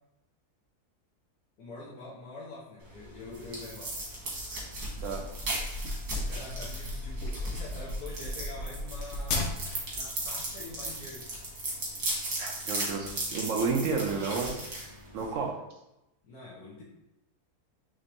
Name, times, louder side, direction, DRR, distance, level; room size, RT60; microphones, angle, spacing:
voice 1, 1.6-3.9 6.1-9.5 9.9-11.3 15.3-15.5 16.2-16.8, left 2 dB, 75° left, -7 dB, 1.4 m, -45 dB
sound 1, 2.8-15.5, right 1 dB, 90° right, 2.0 m, -37 dB
sound 2, 4.9-10.0, left 2 dB, 60° left, 0.9 m, -35 dB
voice 2, 12.4-14.6 15.1-15.6, right 4 dB, 70° right, 2 dB, 0.8 m, -31 dB
4.9 x 3.3 x 2.9 m, 0.90 s
omnidirectional pair, 1.6 m